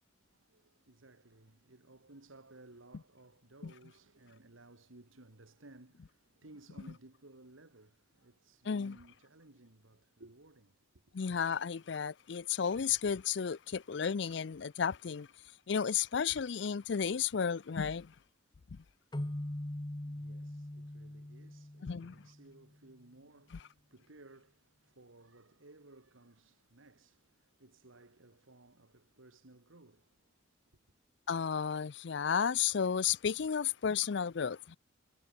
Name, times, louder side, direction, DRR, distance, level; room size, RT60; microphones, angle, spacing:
voice 1, 0.2-11.2 20.0-30.4, right 2 dB, 85° right, 2.1 m, -59 dB
voice 2, 11.1-15.3 15.7-18.1 18.7-18.8 21.8-22.1 31.3-34.8, left 7 dB, 65° left, 0.5 m, -33 dB
sound 1, 19.1-22.6, left 1 dB, 20° left, 0.8 m, -42 dB
head